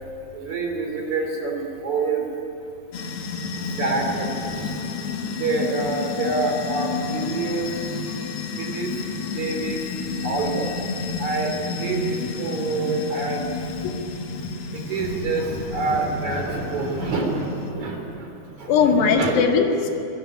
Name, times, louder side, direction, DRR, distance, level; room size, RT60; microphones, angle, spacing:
voice 1, 0.3-2.3 3.6-4.8 5.4-8.0 8.5-9.0 9.2-9.8 10.2-10.8 11.2-13.5 14.7-19.4, right 3 dB, 45° right, 2 dB, 4.6 m, -27 dB
sound 1, 2.9-17.7, left 4 dB, 50° left, 1.9 m, -31 dB
voice 2, 13.8-14.3 18.7-20.0, left 6 dB, 80° left, 3 dB, 4.3 m, -20 dB
24.5 x 22.0 x 9.7 m, 2.9 s
omnidirectional pair, 4.7 m